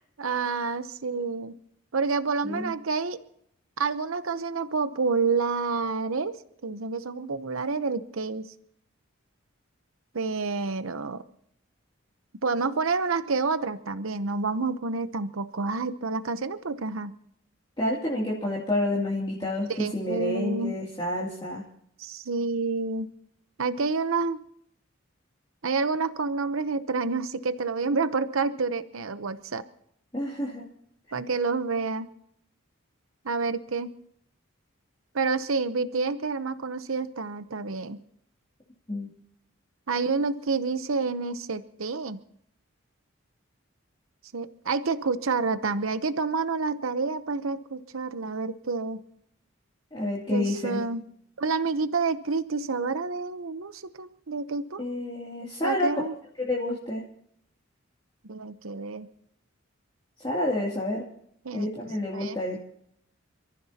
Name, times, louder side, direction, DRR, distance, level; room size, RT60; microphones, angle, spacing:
voice 1, 0.2-1.5 1.9-3.2 3.8-8.5 10.1-11.2 12.4-17.1 19.7-20.8 22.0-23.1 23.6-24.4 25.6-29.7 31.1-32.1 33.2-33.9 35.1-38.0 39.9-42.2 44.3-49.0 50.3-51.0 51.4-54.8 55.6-56.1 58.2-59.1 61.4-61.7 62.1-62.4, right 4 dB, 80° right, 12 dB, 0.8 m, -28 dB
voice 2, 17.8-21.6 30.1-30.6 38.9-39.1 49.9-50.8 54.8-55.9 56.4-57.0 60.2-61.0 61.5-62.6, left 1 dB, 25° left, -5 dB, 2.6 m, -29 dB
29.5 x 14.5 x 2.9 m, 0.69 s
head